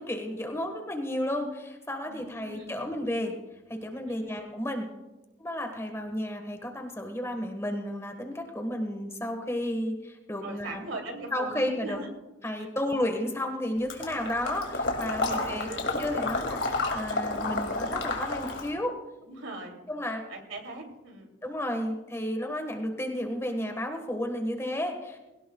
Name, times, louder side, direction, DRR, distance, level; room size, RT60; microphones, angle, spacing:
voice 1, 0.0-3.4 3.7-4.9 5.4-10.8 11.3-12.0 12.4-19.0 19.9-20.2 21.4-25.2, left 1 dB, 15° left, 4 dB, 1.5 m, -32 dB
voice 2, 2.0-2.9 4.0-4.4 10.4-12.1 13.9-14.1 15.2-15.8 19.2-21.3, right 2 dB, 85° right, 2 dB, 2.9 m, -40 dB
Water / Liquid, 13.9-18.7, left 3 dB, 65° left, 2.4 m, -31 dB
21.0 x 18.0 x 2.3 m, 1.0 s
head